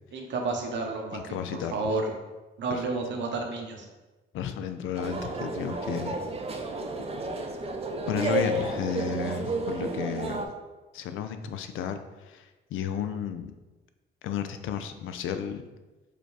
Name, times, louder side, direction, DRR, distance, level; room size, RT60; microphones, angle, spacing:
voice 1, 0.1-2.1 2.6-3.9, right 3 dB, 65° right, 2 dB, 0.9 m, -31 dB
voice 2, 1.1-1.7 2.7-2.8 4.3-6.2 8.1-10.5 10.9-13.5 14.2-15.6, left 7 dB, 80° left, 8 dB, 0.5 m, -33 dB
sound 1, 5.0-10.5, right 2 dB, 30° right, 0.6 m, -31 dB
4.9 x 2.3 x 4.7 m, 1.1 s
cardioid pair, 90°, 20 cm